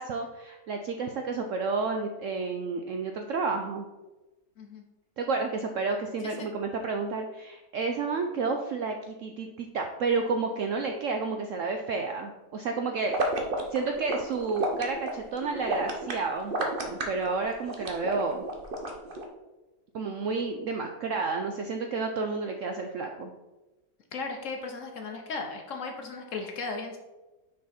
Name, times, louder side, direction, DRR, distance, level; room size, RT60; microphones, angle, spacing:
voice 1, 0.0-3.9 5.2-13.2 13.7-18.4 19.9-23.3, right 4 dB, 75° right, 4 dB, 0.7 m, -31 dB
sound 1, 13.1-19.2, right 2 dB, 45° right, 0.8 m, -31 dB
voice 2, 24.1-27.0, left 4 dB, 60° left, 3 dB, 1.0 m, -36 dB
5.9 x 5.0 x 4.2 m, 1.1 s
omnidirectional pair, 1.8 m